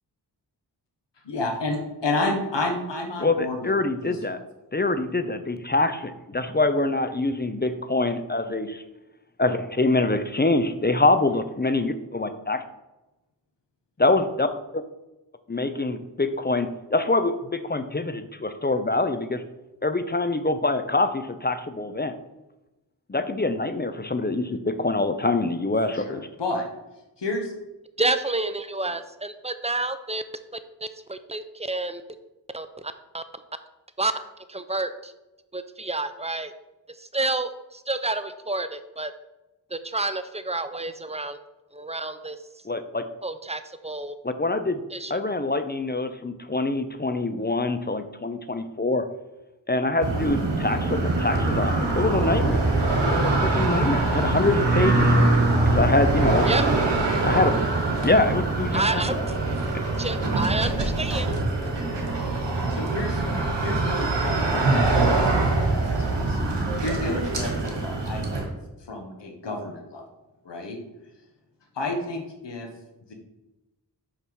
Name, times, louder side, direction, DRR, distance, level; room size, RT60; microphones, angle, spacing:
voice 1, 1.2-3.7 4.0-4.2 25.9-26.7 27.2-27.5 62.7-63.2 63.6-66.4 66.8-68.4 68.9-70.0 70.4-70.8 71.7-72.7 73.1-73.2, left 2 dB, 80° left, 2 dB, 1.4 m, -30 dB
voice 2, 3.2-4.4 4.7-8.8 9.4-12.6 14.0-14.5 15.5-19.4 19.8-22.1 23.1-26.3 42.7-43.1 44.2-44.8 45.1-49.1 49.7-52.7 53.1-55.1 55.7-56.5 57.2-57.6 58.0-59.2, left 2 dB, 25° left, 10 dB, 0.6 m, -25 dB
voice 3, 28.0-30.2 31.1-32.0 32.5-33.2 34.0-34.1 34.5-35.1 35.5-36.5 37.1-37.5 37.9-39.1 39.7-41.4 41.7-42.4 43.2-44.2 44.9-45.1 56.5-56.6 58.7-59.2 60.0-61.3, right 2 dB, 15° right, 10 dB, 0.6 m, -29 dB
sound 1, 50.0-68.4, right 2 dB, 80° right, 1.4 m, -23 dB
5.7 x 5.5 x 4.7 m, 1.0 s
cardioid pair, 45°, 42 cm